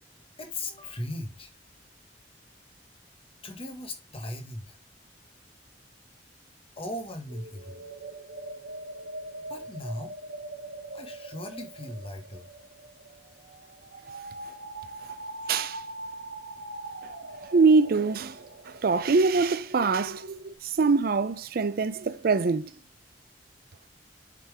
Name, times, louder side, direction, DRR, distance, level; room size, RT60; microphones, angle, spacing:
voice 1, 0.4-1.5 3.4-4.8 6.8-7.8 9.5-10.1 10.9-12.4 15.4-15.5, left 1 dB, 35° left, 1.4 m, -38 dB
sound 1, 7.3-20.6, right 1 dB, 85° right, 1.0 m, -42 dB
voice 2, 15.5-15.8 17.5-18.4 18.8-20.2 20.6-22.7, right 4 dB, 55° right, 0.5 m, -23 dB
7.2 x 3.8 x 4.7 m
head